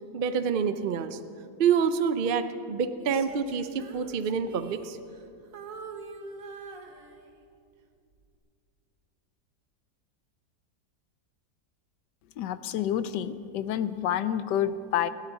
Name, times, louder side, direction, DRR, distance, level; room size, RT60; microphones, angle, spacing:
voice 1, 0.1-1.2 1.6-5.0, right 6 dB, 75° right, 10 dB, 0.5 m, -27 dB
Female singing, 3.0-5.3 5.5-7.6 8.1-8.4, right 4 dB, 55° right, 1.4 m, -44 dB
voice 2, 12.4-15.1, left 10 dB, 80° left, 13 dB, 1.3 m, -28 dB
27.5 x 12.5 x 4.0 m, 2.5 s
omnidirectional pair, 1.9 m